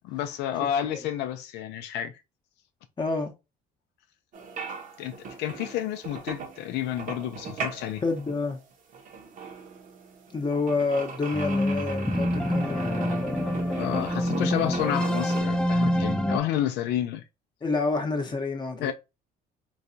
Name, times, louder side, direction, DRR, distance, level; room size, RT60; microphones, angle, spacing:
voice 1, 0.0-2.2 5.0-8.0 13.7-17.2 18.8-18.9, left 11 dB, 85° left, 0.4 m, -30 dB
voice 2, 3.0-3.3 8.0-8.6 10.3-13.6 17.6-18.9, left 3 dB, 25° left, 0.8 m, -28 dB
sound 1, 4.3-15.4, right 5 dB, 50° right, 0.8 m, -39 dB
sound 2, 11.3-16.4, left 1 dB, 5° left, 0.4 m, -26 dB
4.0 x 2.2 x 2.6 m
cardioid pair, 110°, 17 cm